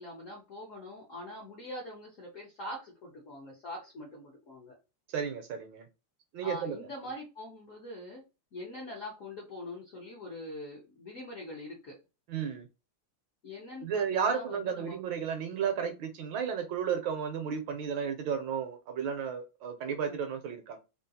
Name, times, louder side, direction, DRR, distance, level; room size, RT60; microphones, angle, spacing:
voice 1, 0.0-4.7 6.4-8.2 8.5-12.0 13.4-15.0 20.0-20.2, left 1 dB, 65° left, 0.8 m, -43 dB
voice 2, 5.1-5.9 6.3-6.8 12.3-12.7 13.8-20.8, right 7 dB, 75° right, 1.2 m, -33 dB
3.6 x 2.3 x 2.6 m
omnidirectional pair, 2.3 m